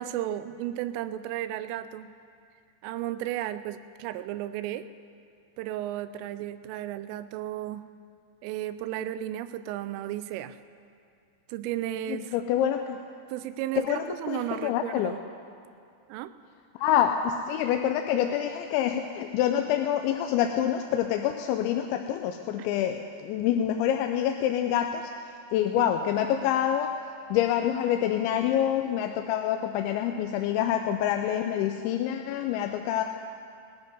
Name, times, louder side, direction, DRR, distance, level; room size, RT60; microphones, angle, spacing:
voice 1, 0.0-2.1 2.8-4.9 5.6-7.9 8.4-10.6 11.5-12.3 13.3-15.2 16.1-16.3 22.6-22.7 25.8-25.9, right 12 dB, 85° right, 12 dB, 3.1 m, -34 dB
voice 2, 12.1-13.0 13.8-15.1 16.8-26.9 27.3-33.0, left 10 dB, 85° left, 4 dB, 2.7 m, -27 dB
18.5 x 10.5 x 5.3 m, 2.4 s
omnidirectional pair, 5.6 m